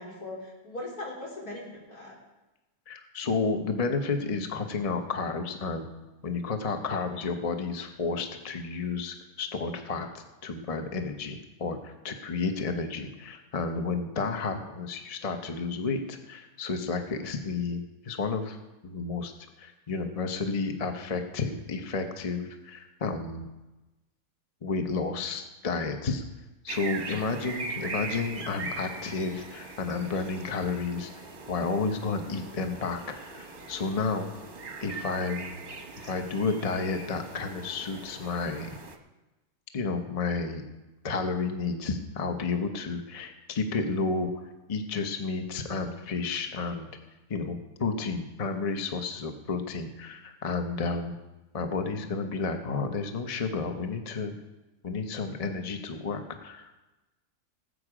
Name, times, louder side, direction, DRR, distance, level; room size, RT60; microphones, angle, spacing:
voice 1, 0.0-2.1 6.8-7.2, left 1 dB, 80° left, -4 dB, 4.2 m, -40 dB
voice 2, 2.9-5.9 6.2-18.6 18.8-19.3 19.6-23.4 24.6-26.2 26.6-31.1 31.5-34.3 34.8-35.6 36.0-38.8 39.7-40.6 41.0-44.3 44.7-46.9 47.3-51.2 51.5-54.3 54.8-56.7, left 4 dB, 30° left, 6 dB, 0.8 m, -31 dB
sound 1, 26.7-39.0, right 3 dB, 35° right, 1.0 m, -41 dB
18.5 x 8.1 x 5.0 m, 1.1 s
omnidirectional pair, 1.6 m